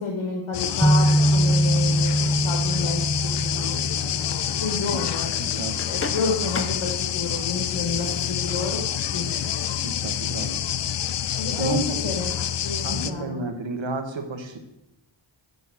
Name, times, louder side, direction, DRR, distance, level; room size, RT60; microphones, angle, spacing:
voice 1, 0.0-3.7 4.6-8.8 9.1-9.4 11.3-12.3 12.6-13.5, left 4 dB, 80° left, 1 dB, 1.4 m, -30 dB
sound 1, 0.5-13.1, left 10 dB, 60° left, 0.5 m, -27 dB
sound 2, 0.8-4.8, right 1 dB, 5° right, 0.4 m, -22 dB
sound 3, 3.5-9.8, left 3 dB, 30° left, 0.8 m, -40 dB
voice 2, 5.4-5.7 9.8-10.6 11.2-11.8 12.8-14.6, right 4 dB, 65° right, 6 dB, 1.3 m, -32 dB
7.9 x 4.4 x 6.8 m, 0.86 s
wide cardioid pair, 65°, 49 cm